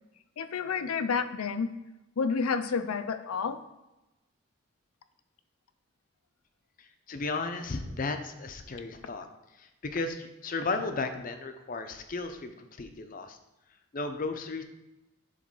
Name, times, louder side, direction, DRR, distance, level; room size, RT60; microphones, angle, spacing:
voice 1, 0.4-1.7 2.2-3.6, left 5 dB, 90° left, 11 dB, 0.5 m, -30 dB
voice 2, 7.1-9.3 9.6-13.4 13.9-14.6, left 3 dB, 40° left, 7 dB, 0.5 m, -34 dB
5.0 x 4.0 x 5.4 m, 0.99 s
head